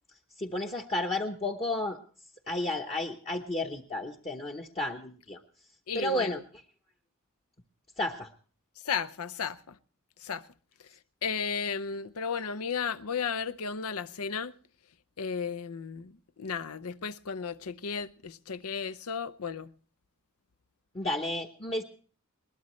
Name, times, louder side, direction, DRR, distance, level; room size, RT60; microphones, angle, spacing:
voice 1, 0.4-2.0 2.5-5.4 5.9-6.4 8.0-8.3 20.9-21.8, left 1 dB, 25° left, 0.9 m, -32 dB
voice 2, 5.9-6.4 8.8-9.8 10.2-10.4 11.2-14.5 15.2-19.7, left 6 dB, 85° left, 0.7 m, -34 dB
21.0 x 19.5 x 3.1 m
head